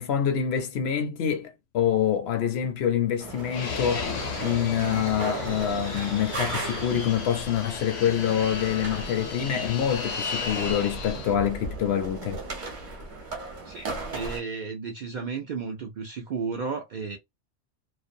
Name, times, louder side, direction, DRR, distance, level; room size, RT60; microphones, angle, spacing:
voice 1, 0.0-4.1 4.4-12.4, left 9 dB, 65° left, 0.7 m, -26 dB
sound 1, 3.2-14.4, right 3 dB, 45° right, 0.9 m, -37 dB
Fixed-wing aircraft airplane, 3.5-11.3, left 5 dB, 90° left, 1.1 m, -35 dB
voice 2, 13.7-17.2, right 5 dB, 60° right, 0.5 m, -33 dB
2.5 x 2.1 x 2.5 m
omnidirectional pair, 1.2 m